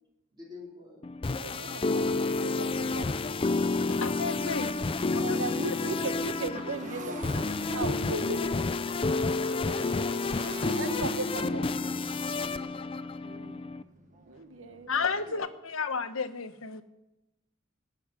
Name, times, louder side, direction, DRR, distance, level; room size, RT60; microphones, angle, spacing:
voice 1, 0.3-1.2 5.7-6.1 8.1-8.7 9.4-10.1 11.3-11.4 12.4-12.9, left 1 dB, 20° right, -3 dB, 4.1 m, -45 dB
sound 1, 1.0-13.8, left 3 dB, 25° left, 0.4 m, -30 dB
voice 2, 1.3-3.2 5.2-7.4 7.7-8.4 10.7-11.7 13.2-13.6 14.3-14.9 15.3-15.4, right 3 dB, 70° right, 9 dB, 1.1 m, -37 dB
Motorcycle, 2.7-2.8 3.3-3.5 3.7-15.3, right 2 dB, 40° right, 1.3 m, -45 dB
voice 3, 3.9-4.7 5.1-5.4 14.9-16.8, left 5 dB, 85° left, 9 dB, 1.1 m, -32 dB
17.0 x 6.5 x 9.7 m, 0.94 s
head